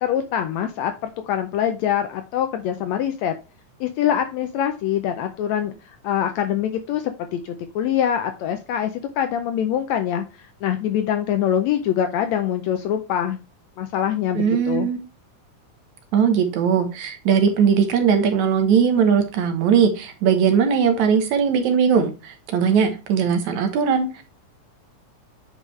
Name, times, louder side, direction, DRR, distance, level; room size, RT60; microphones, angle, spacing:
voice 1, 0.0-3.3 3.8-13.4 13.8-14.9, left 10 dB, 80° left, 7 dB, 1.6 m, -24 dB
voice 2, 14.3-15.0 16.1-24.2, right 7 dB, 70° right, 6 dB, 2.3 m, -19 dB
9.0 x 4.9 x 3.2 m, 0.31 s
omnidirectional pair, 3.6 m